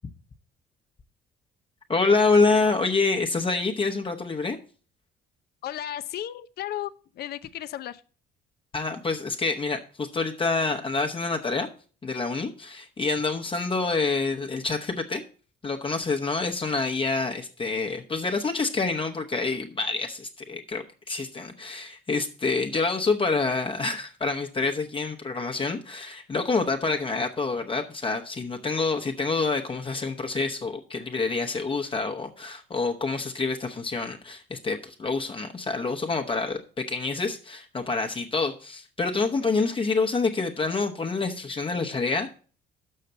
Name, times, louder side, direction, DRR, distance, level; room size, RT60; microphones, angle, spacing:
voice 1, 1.9-4.6 8.7-11.7 12.0-15.2 15.6-42.3, left 3 dB, 25° left, 3 dB, 0.9 m, -27 dB
voice 2, 5.6-8.0, left 12 dB, 55° left, 12 dB, 0.6 m, -34 dB
6.5 x 5.7 x 6.8 m, 0.40 s
cardioid pair, 90°, 19 cm